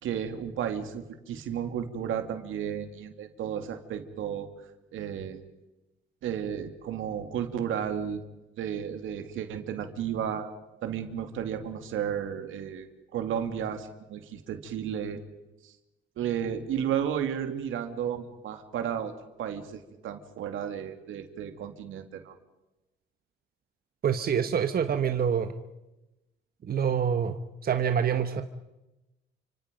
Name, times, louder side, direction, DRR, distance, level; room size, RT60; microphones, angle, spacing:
voice 1, 0.0-4.5 4.9-5.4 6.2-8.2 8.6-10.5 10.8-15.2 16.2-19.1 19.4-22.3, right 9 dB, 80° right, 7 dB, 2.6 m, -33 dB
voice 2, 24.0-25.5 26.6-28.4, right 7 dB, 50° right, 8 dB, 1.3 m, -26 dB
30.0 x 25.5 x 5.3 m, 1.0 s
cardioid pair, 90°, 20 cm